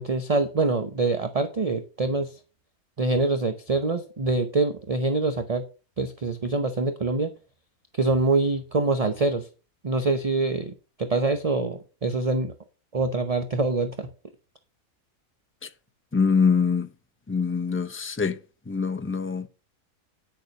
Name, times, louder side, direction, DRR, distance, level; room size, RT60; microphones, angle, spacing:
voice 1, 0.0-2.3 3.0-5.6 6.0-7.3 8.0-9.5 9.8-10.7 11.0-12.5 12.9-14.1, right 3 dB, 30° right, 0.7 m, -25 dB
voice 2, 16.1-16.9 17.3-18.4 18.7-19.5, left 5 dB, 15° left, 0.4 m, -24 dB
9.7 x 6.8 x 5.3 m
omnidirectional pair, 1.5 m